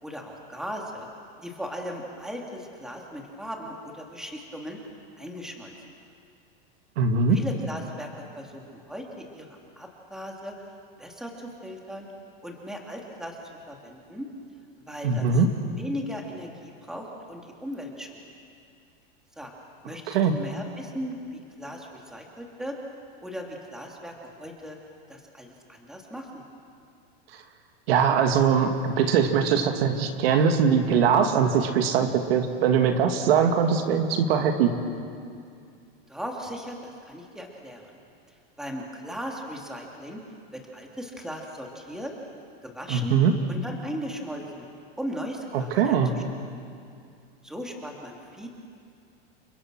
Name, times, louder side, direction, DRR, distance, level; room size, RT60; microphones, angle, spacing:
voice 1, 0.0-1.1 1.4-4.8 5.2-5.7 7.3-9.5 9.7-10.7 11.0-12.1 12.4-13.4 13.7-14.3 14.9-15.4 15.8-18.2 19.4-19.5 19.8-22.8 23.2-24.8 25.1-26.4 36.1-38.0 38.3-40.2 40.5-42.1 42.6-43.2 43.5-44.7 45.0-46.2 47.4-48.5, equal, ahead, 0 dB, 2.7 m, -37 dB
voice 2, 7.0-7.4 15.0-15.5 20.1-20.3 27.9-34.7 42.9-43.3 45.5-46.1, right 6 dB, 75° right, 5 dB, 2.5 m, -21 dB
30.0 x 24.0 x 6.3 m, 2.4 s
supercardioid pair, 155°, 30 cm